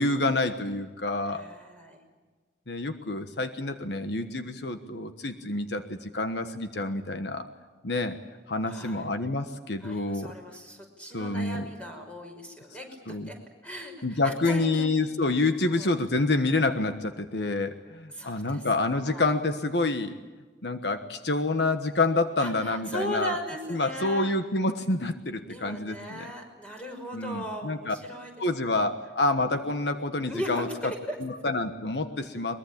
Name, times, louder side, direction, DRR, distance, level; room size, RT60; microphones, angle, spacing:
voice 1, 0.0-1.4 2.7-7.5 7.8-8.2 8.5-10.3 11.1-11.7 13.1-13.3 14.0-20.1 20.6-23.4 23.7-26.3 27.1-27.9 28.4-30.9 31.2-32.6, left 2 dB, 70° left, 8 dB, 1.4 m, -28 dB
voice 2, 1.3-2.0 8.7-9.1 9.8-15.1 15.7-15.9 18.1-18.6 19.0-19.3 22.4-24.3 25.5-28.3 30.3-31.2, left 1 dB, 5° left, 3 dB, 5.7 m, -37 dB
22.5 x 22.5 x 8.7 m, 1.4 s
head